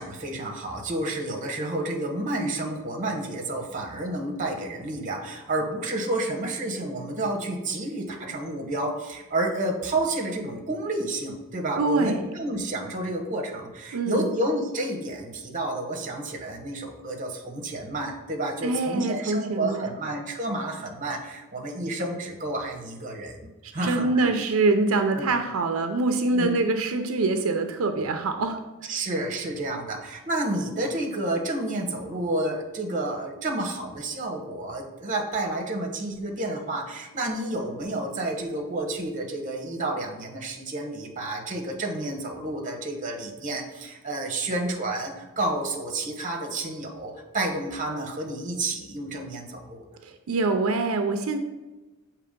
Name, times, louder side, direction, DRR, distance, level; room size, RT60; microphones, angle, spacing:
voice 1, 0.0-24.3 25.1-25.3 26.3-26.6 28.9-49.8, right 2 dB, 40° right, 2 dB, 0.9 m, -30 dB
voice 2, 11.8-12.2 13.9-14.3 18.6-19.9 23.6-28.9 50.0-51.4, right 3 dB, 85° right, 6 dB, 0.5 m, -25 dB
6.8 x 3.0 x 5.1 m, 1.1 s
head